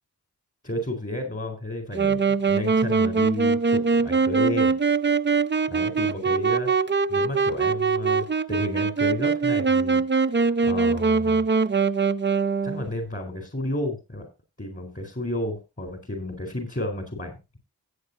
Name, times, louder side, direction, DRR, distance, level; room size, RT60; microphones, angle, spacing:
voice 1, 0.6-4.7 5.7-6.7 7.1-10.0 10.3-11.4 12.6-14.3 14.6-17.6, left 1 dB, 30° left, 4 dB, 4.0 m, -32 dB
Wind instrument woodwind instrument, 1.9-12.9, right 5 dB, 30° right, 0.5 m, -22 dB
16.0 x 8.7 x 2.7 m, 0.26 s
cardioid pair, 45°, 41 cm